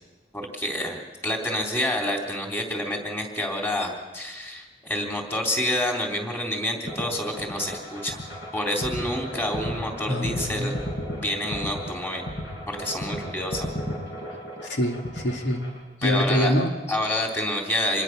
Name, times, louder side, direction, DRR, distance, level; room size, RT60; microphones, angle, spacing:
voice 1, 0.3-8.2 8.5-10.7 11.1-12.2 12.7-13.7 16.0-16.6 16.9-18.0, left 1 dB, 15° left, 1 dB, 3.4 m, -28 dB
sound 1, 6.9-15.8, equal, 65° left, 7.9 m, -34 dB
voice 2, 10.1-10.7 14.6-15.7 16.0-16.7, equal, 85° left, 3 dB, 2.2 m, -25 dB
26.0 x 21.5 x 6.1 m, 1.2 s
head